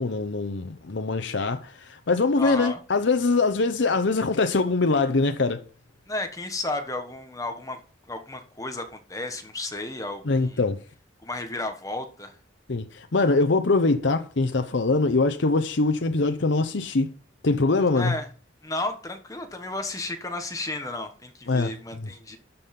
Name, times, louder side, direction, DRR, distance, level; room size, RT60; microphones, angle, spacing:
voice 1, 0.0-5.7 10.2-10.8 12.7-17.1 17.4-18.2 21.5-22.1, left 3 dB, 70° left, 0.8 m, -23 dB
voice 2, 2.4-2.8 6.1-7.8 8.1-10.6 11.2-12.4 17.9-18.3 18.6-22.4, left 2 dB, 20° left, 1.2 m, -33 dB
12.5 x 5.4 x 5.8 m
head